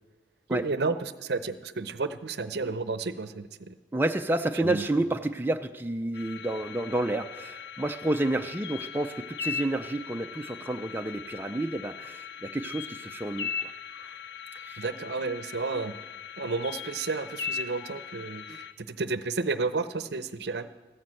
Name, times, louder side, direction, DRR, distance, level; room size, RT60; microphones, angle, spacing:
voice 1, 0.5-3.8 4.6-4.8 14.8-15.9 16.4-20.7, right 3 dB, 60° right, 12 dB, 0.7 m, -32 dB
voice 2, 3.9-14.2 14.5-14.9 18.5-18.6, right 1 dB, 10° right, 5 dB, 0.4 m, -30 dB
sound 1, 6.1-18.7, left 7 dB, 65° left, 0.8 m, -39 dB
14.5 x 9.5 x 7.7 m, 1.3 s
head